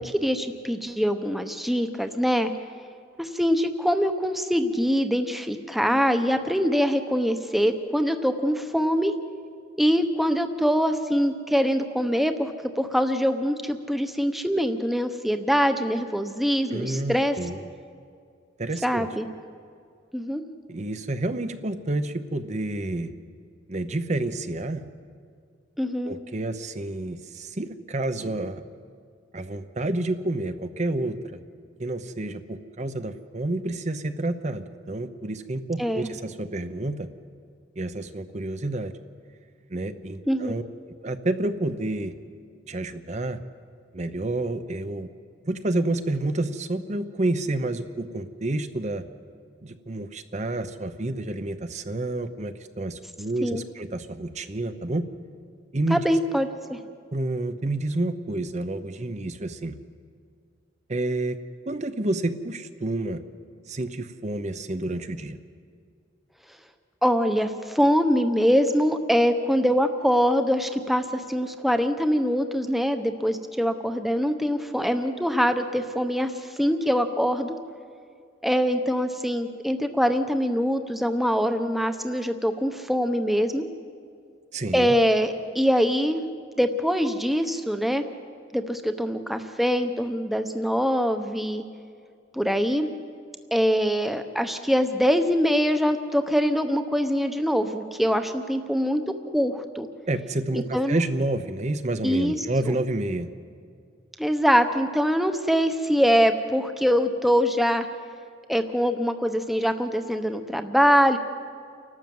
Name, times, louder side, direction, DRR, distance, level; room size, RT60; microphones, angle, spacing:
voice 1, 0.0-2.5 3.2-9.1 9.8-12.5 12.8-17.4 18.8-19.3 20.1-20.4 25.8-26.1 35.8-36.1 40.3-40.5 53.4-53.6 55.9-56.8 67.0-77.5 78.4-83.6 84.7-86.2 86.6-88.1 88.5-91.6 92.3-92.9 93.5-99.0 99.3-99.9 100.5-101.0 102.0-102.8 104.2-107.9 108.5-111.2, equal, ahead, 7 dB, 0.9 m, -23 dB
voice 2, 16.7-17.6 18.6-19.1 20.7-23.1 23.7-24.8 26.0-28.6 29.3-31.4 31.8-37.1 37.8-38.9 39.7-40.6 41.0-42.1 42.7-43.4 43.9-45.1 45.4-49.0 49.6-55.1 55.7-56.0 57.1-59.8 60.9-61.4 61.7-63.2 63.7-65.4 84.5-84.9 100.1-103.3, right 2 dB, 40° right, 10 dB, 0.9 m, -29 dB
29.5 x 12.5 x 7.8 m, 2.2 s
head